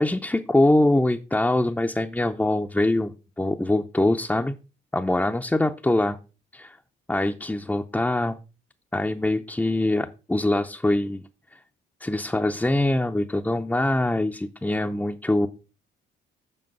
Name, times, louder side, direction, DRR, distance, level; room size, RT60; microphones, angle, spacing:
voice 1, 0.0-4.6 4.9-6.2 6.5-6.8 7.1-8.4 8.9-11.2 11.5-11.6 12.0-15.5, left 1 dB, 5° left, 4 dB, 0.5 m, -23 dB
7.7 x 5.4 x 5.3 m, 0.33 s
cardioid pair, 90°, 20 cm